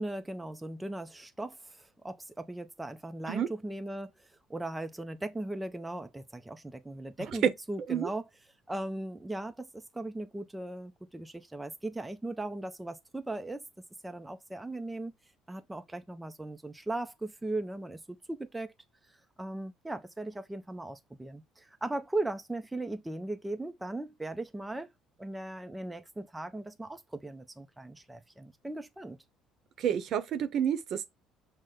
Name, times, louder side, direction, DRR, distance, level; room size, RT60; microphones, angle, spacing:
voice 1, 0.0-8.2 8.7-13.6 14.0-15.1 15.5-18.7 19.1-24.9 25.2-29.2, right 2 dB, 10° right, 0.4 m, -38 dB
voice 2, 29.8-31.1, right 9 dB, 60° right, 0.7 m, -30 dB
6.2 x 2.1 x 3.7 m
cardioid pair, 95°, 0 cm